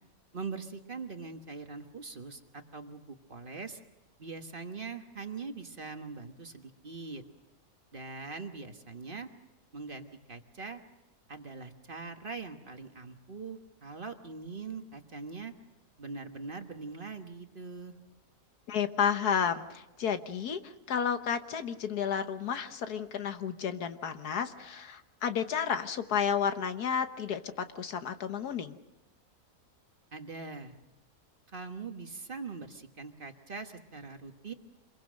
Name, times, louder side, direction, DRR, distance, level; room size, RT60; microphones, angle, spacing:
voice 1, 0.3-3.8 4.2-7.2 7.9-9.3 9.7-10.8 11.3-15.5 16.0-17.9 30.1-30.8 31.5-34.5, right 4 dB, 35° right, 6 dB, 1.4 m, -42 dB
voice 2, 18.7-28.8, left 7 dB, 85° left, 9 dB, 1.7 m, -32 dB
26.0 x 22.5 x 6.4 m, 1.0 s
omnidirectional pair, 1.6 m